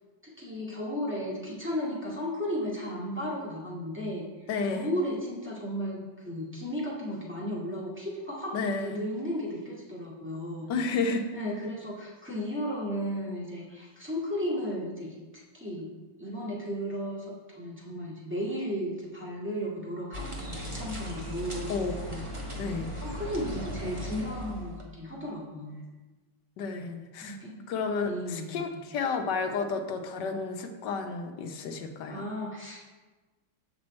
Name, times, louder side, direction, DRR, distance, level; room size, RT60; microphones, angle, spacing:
voice 1, 0.4-10.7 11.3-21.7 23.0-25.8 27.2-27.7 28.0-28.8 32.1-32.8, equal, 5° right, -6 dB, 1.8 m, -35 dB
voice 2, 4.5-4.9 8.5-9.0 10.7-11.2 21.7-22.2 22.6-22.9 26.6-27.4 27.7-32.2, left 4 dB, 65° left, 5 dB, 1.3 m, -31 dB
sound 1, 20.1-24.8, equal, 25° right, 0.7 m, -37 dB
7.6 x 5.9 x 4.3 m, 1.2 s
omnidirectional pair, 2.2 m